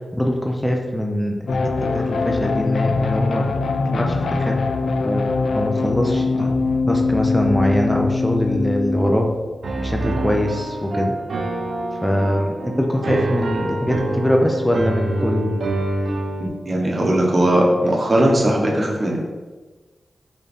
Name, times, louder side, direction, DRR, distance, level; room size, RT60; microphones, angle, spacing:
voice 1, 0.1-3.4 3.9-4.6 5.0-6.5 6.9-9.3 9.8-11.2 12.0-15.5, equal, 5° left, 1 dB, 0.4 m, -22 dB
sound 1, 1.5-9.4, left 3 dB, 85° left, 0.3 m, -22 dB
Piano, 9.6-16.5, right 2 dB, 70° right, 0.5 m, -26 dB
voice 2, 16.4-19.2, right 1 dB, 35° right, -1 dB, 0.8 m, -18 dB
4.2 x 3.7 x 3.4 m, 1.3 s
wide cardioid pair, 140°, 0 cm